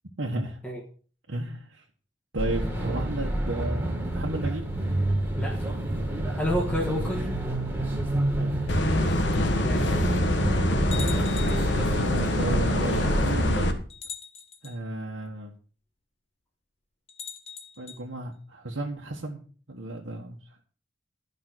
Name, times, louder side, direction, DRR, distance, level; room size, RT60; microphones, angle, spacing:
voice 1, 0.2-0.6 1.3-1.8 2.3-4.7 8.4-8.7 11.9-13.8 14.6-15.5 17.8-19.4 19.7-20.4, right 1 dB, 80° right, -3 dB, 1.4 m, -34 dB
sound 1, 2.4-13.6, right 1 dB, 10° right, 2.2 m, -29 dB
voice 2, 5.3-5.7 6.4-7.3 9.6-10.0, equal, 10° left, -4 dB, 1.6 m, -30 dB
sound 2, 8.7-13.7, left 1 dB, 65° left, 1.3 m, -25 dB
sound 3, 10.9-11.8 12.9-13.0 13.9-14.8 17.1-18.0, left 6 dB, 30° left, 1.2 m, -40 dB
12.0 x 5.7 x 6.2 m, 0.42 s
head